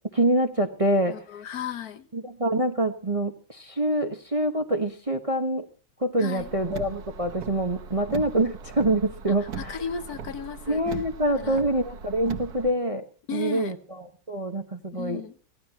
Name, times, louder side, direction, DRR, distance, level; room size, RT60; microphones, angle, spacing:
voice 1, 0.1-1.2 2.1-5.6 6.0-9.8 10.7-13.0 13.3-15.2, right 1 dB, 20° right, 5 dB, 1.0 m, -26 dB
voice 2, 1.1-2.1 6.2-6.5 9.6-11.0 11.4-11.6 13.3-13.8 14.9-15.3, left 7 dB, 55° left, 12 dB, 1.6 m, -35 dB
Car, 6.4-12.7, right 6 dB, 60° right, 1.6 m, -39 dB
25.0 x 17.0 x 2.9 m, 0.36 s
omnidirectional pair, 2.0 m